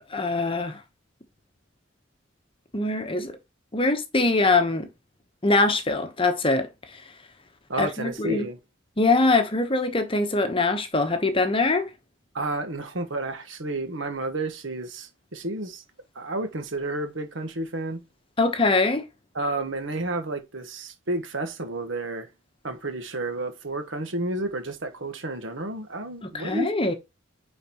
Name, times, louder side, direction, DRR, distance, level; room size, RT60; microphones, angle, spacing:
voice 1, 0.1-0.8 2.7-3.4 3.7-4.9 5.4-7.0 7.8-8.5 9.0-11.9 18.4-19.0 26.2-26.9, left 3 dB, 25° left, 1.0 m, -23 dB
voice 2, 7.7-8.6 12.3-15.8 16.1-18.0 19.3-22.3 22.6-26.7, right 2 dB, 70° right, 1.3 m, -31 dB
9.2 x 4.0 x 3.0 m
head